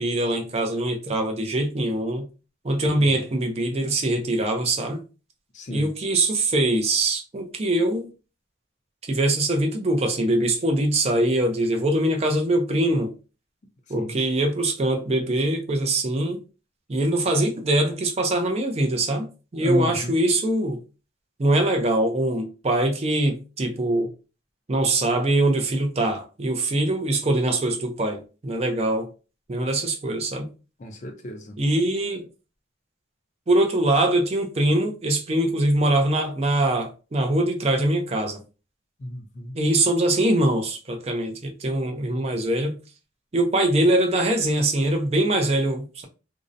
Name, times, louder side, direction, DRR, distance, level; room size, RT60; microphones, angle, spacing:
voice 1, 0.0-2.3 2.6-5.0 5.7-8.1 9.1-13.1 13.9-16.4 16.9-19.3 19.5-20.8 21.4-24.1 24.7-29.1 29.5-30.5 31.6-32.3 33.5-38.4 39.5-42.8 43.3-46.1, right 1 dB, 35° right, 0.4 m, -23 dB
voice 2, 5.5-5.9 14.0-14.1 19.6-20.1 30.8-31.5 39.0-39.5, left 1 dB, 40° left, 0.4 m, -31 dB
2.6 x 2.0 x 2.4 m
head